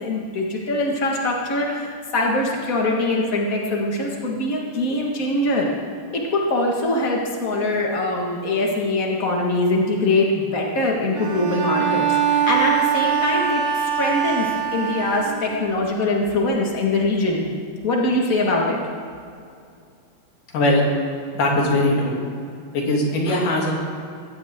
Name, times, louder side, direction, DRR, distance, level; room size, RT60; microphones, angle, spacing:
voice 1, 0.0-5.7 6.1-17.4 17.8-18.8, left 2 dB, 85° left, -1 dB, 0.7 m, -23 dB
Bowed string instrument, 11.1-15.7, right 8 dB, 75° right, 3.5 m, -23 dB
voice 2, 21.3-22.2 22.7-23.7, left 1 dB, 55° left, -2 dB, 4.1 m, -20 dB
21.5 x 17.0 x 3.7 m, 2.4 s
omnidirectional pair, 4.6 m